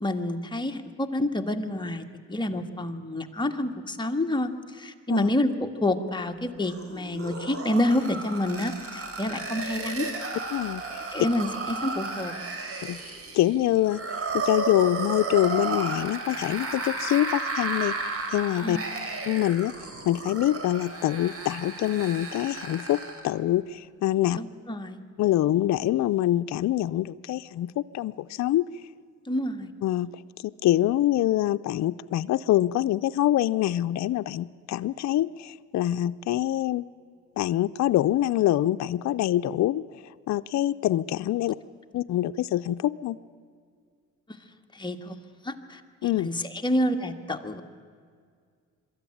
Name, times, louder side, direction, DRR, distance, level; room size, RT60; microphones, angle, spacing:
voice 1, 0.0-2.0 2.3-10.1 11.1-12.3 18.6-18.8 24.3-25.0 29.2-29.7 44.7-45.2 45.4-47.6, left 1 dB, 15° left, 4 dB, 1.6 m, -28 dB
sound 1, 6.6-23.3, right 3 dB, 50° right, 3.6 m, -33 dB
voice 2, 10.5-11.0 12.8-13.0 13.3-14.0 14.3-17.9 18.3-18.8 19.3-19.7 20.0-23.0 23.2-24.4 25.2-28.6 29.8-30.1 30.4-36.9 37.4-39.8 40.3-41.6 41.9-43.2 46.0-46.3, left 13 dB, 65° left, 10 dB, 0.5 m, -25 dB
23.5 x 13.0 x 10.0 m, 2.1 s
cardioid pair, 90°, 30 cm